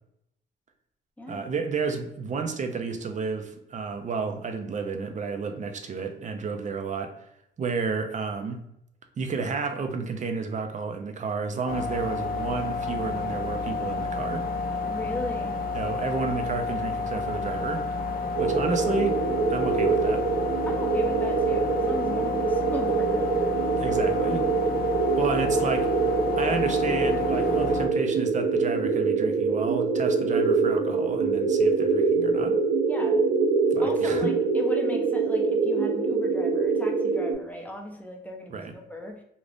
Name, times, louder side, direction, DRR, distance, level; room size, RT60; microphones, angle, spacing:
voice 1, 1.3-7.1 7.6-8.6 9.2-14.4 15.7-17.8 18.4-19.2 19.5-20.2 23.7-24.5 25.2-25.9 26.4-32.6 33.7-34.3 38.5-38.7, right 4 dB, 40° right, 6 dB, 0.5 m, -31 dB
sound 1, 11.7-27.9, left 4 dB, 50° left, 0.5 m, -30 dB
voice 2, 14.9-15.6 20.7-23.3 32.9-33.2 33.8-39.2, left 1 dB, 10° left, 2 dB, 0.6 m, -37 dB
sound 2, 18.3-37.3, right 4 dB, 75° right, 0.7 m, -25 dB
2.6 x 2.4 x 3.3 m, 0.78 s
cardioid pair, 90°, 20 cm